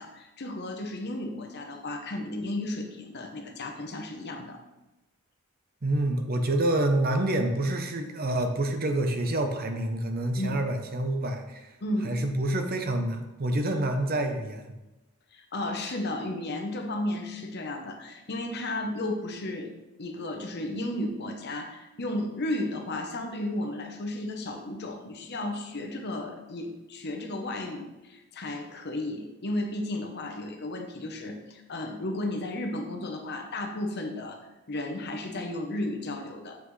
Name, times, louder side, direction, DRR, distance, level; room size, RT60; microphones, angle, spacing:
voice 1, 0.0-4.6 10.4-10.6 11.8-12.2 15.3-19.7 20.0-34.4 34.7-36.6, left 1 dB, 50° left, 4 dB, 0.9 m, -34 dB
voice 2, 5.8-11.7 12.0-14.7, right 1 dB, 45° right, 5 dB, 0.7 m, -27 dB
7.6 x 5.8 x 3.2 m, 1.0 s
head